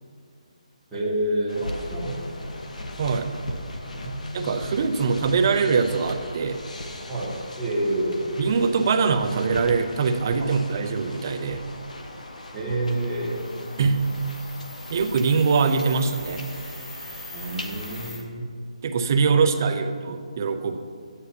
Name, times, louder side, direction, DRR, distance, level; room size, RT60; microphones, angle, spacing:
voice 1, 0.9-2.7 3.9-4.7 5.0-5.2 7.1-8.4 10.4-10.5 12.5-13.4 17.3-18.4 19.4-19.9, right 1 dB, 5° right, -13 dB, 1.8 m, -29 dB
sound 1, 1.5-18.1, left 1 dB, 80° left, 1.2 m, -39 dB
voice 2, 3.0-3.3 4.3-6.6 8.4-11.6 13.8-14.1 14.9-16.4 18.8-20.8, right 5 dB, 25° right, 6 dB, 0.5 m, -23 dB
sound 2, 12.8-18.2, left 1 dB, 25° left, 1.6 m, -43 dB
10.5 x 9.6 x 2.8 m, 2.4 s
hypercardioid pair, 170°, 4 cm